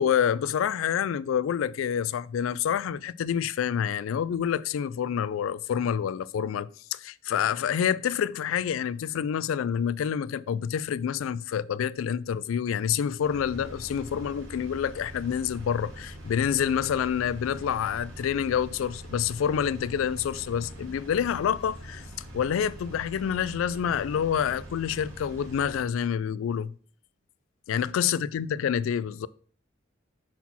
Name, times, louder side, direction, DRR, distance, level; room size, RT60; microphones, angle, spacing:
voice 1, 0.0-22.0 22.3-26.7 27.7-29.3, left 8 dB, 80° left, 0.3 m, -27 dB
Engine, 13.2-25.8, right 1 dB, 80° right, 2.0 m, -43 dB
5.8 x 4.1 x 4.2 m
head